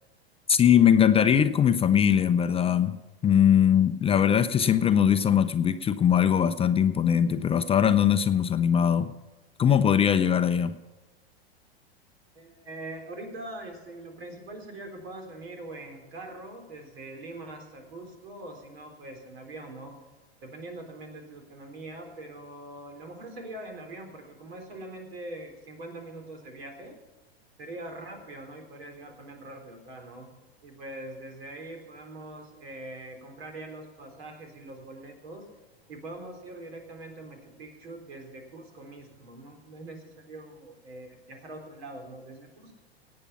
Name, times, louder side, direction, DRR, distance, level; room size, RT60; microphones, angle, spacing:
voice 1, 0.5-9.1 9.6-10.7, left 8 dB, 20° left, 10 dB, 0.5 m, -21 dB
voice 2, 12.3-19.9 20.4-27.0 27.6-30.3 30.6-35.5 35.9-42.7, right 2 dB, 70° right, 3 dB, 3.9 m, -43 dB
17.5 x 8.8 x 5.7 m, 1.2 s
hypercardioid pair, 105°, 31 cm